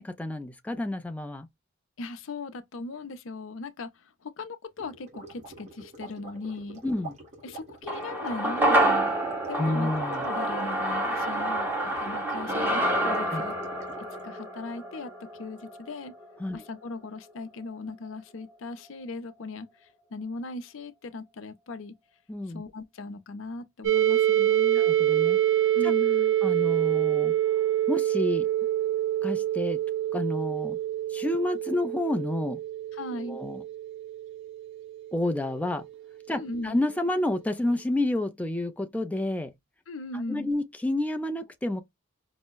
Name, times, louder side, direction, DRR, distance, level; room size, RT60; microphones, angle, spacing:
voice 1, 0.0-1.5 6.8-7.1 9.6-10.3 11.5-11.6 13.3-13.4 16.4-16.6 22.3-22.6 24.8-25.4 25.8-25.9 26.4-27.3 27.9-28.5 29.2-29.8 30.1-30.8 31.1-32.6 33.1-33.6 35.1-35.8 36.3-39.5 40.3-41.8, left 1 dB, 5° left, 0.4 m, -29 dB
voice 2, 2.0-6.8 7.4-9.1 9.5-9.9 10.2-13.5 14.2-15.1 15.4-16.1 16.5-21.9 22.5-24.8 25.7-26.3 32.9-33.4 36.3-36.8 39.9-40.5, left 3 dB, 65° left, 0.5 m, -38 dB
sound 1, 4.8-14.2, right 3 dB, 35° right, 1.2 m, -45 dB
sound 2, 7.9-16.4 16.7-16.8, right 1 dB, 10° right, 1.0 m, -28 dB
sound 3, 23.8-35.5, right 12 dB, 60° right, 0.7 m, -26 dB
5.3 x 2.0 x 2.2 m
head